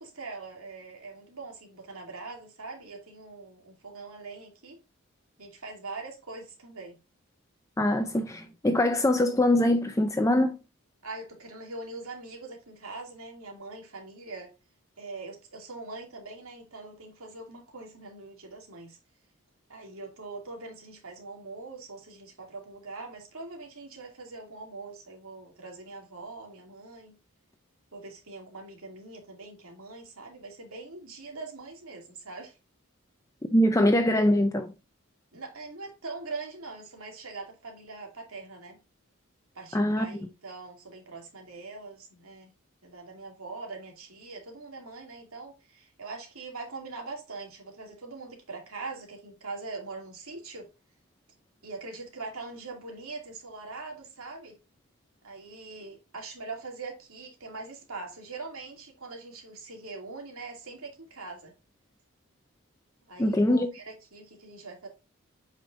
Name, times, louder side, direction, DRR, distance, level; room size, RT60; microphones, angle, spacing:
voice 1, 0.0-4.8 5.4-7.0 11.0-14.5 15.0-19.0 19.7-27.2 27.9-32.6 35.3-38.8 39.5-42.5 42.8-50.7 51.6-54.6 55.2-61.5 63.0-64.9, right 3 dB, 80° right, 2.6 m, -42 dB
voice 2, 7.8-10.6 33.4-34.7 39.7-40.2 63.2-63.7, left 1 dB, 15° left, 0.5 m, -23 dB
8.5 x 5.1 x 2.6 m
head